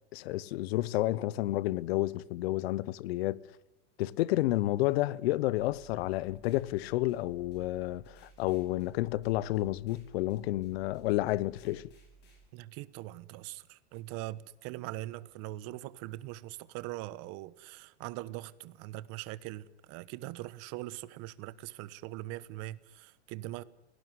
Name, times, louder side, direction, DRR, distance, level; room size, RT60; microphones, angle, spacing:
voice 1, 0.1-3.4 4.0-11.9, left 17 dB, 60° left, 1.0 m, -30 dB
sound 1, 5.6-12.4, right 4 dB, 30° left, 7.6 m, -58 dB
voice 2, 12.5-23.6, right 16 dB, 40° right, 1.2 m, -42 dB
29.5 x 18.0 x 9.6 m
supercardioid pair, 145°, 34 cm